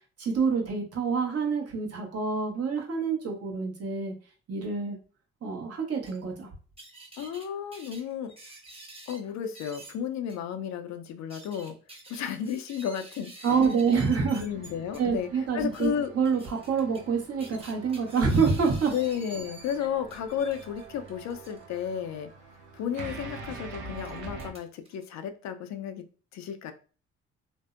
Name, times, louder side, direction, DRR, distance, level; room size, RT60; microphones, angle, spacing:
voice 1, 0.2-4.1 4.5-5.0 5.4-6.5 13.4-14.4 15.0-18.9, right 5 dB, 50° right, 1 dB, 1.0 m, -27 dB
sound 1, 6.1-6.2 6.8-7.5 7.7-9.2 9.5-9.9 10.3-10.4 11.1-15.0 15.6-15.9 16.2-17.1 17.4-19.8 20.1-21.6 22.9-23.2 23.9-25.0, right 2 dB, 20° right, 1.0 m, -49 dB
voice 2, 7.2-8.3 9.1-11.8 12.1-13.5 14.4-15.3 15.5-16.1 18.9-22.3 22.7-26.1 26.3-26.7, left 8 dB, 65° left, 8 dB, 0.4 m, -33 dB
sound 2, 14.5-24.5, right 3 dB, 75° right, 0.6 m, -45 dB
2.6 x 2.0 x 2.4 m, 0.38 s
supercardioid pair, 60°, 30 cm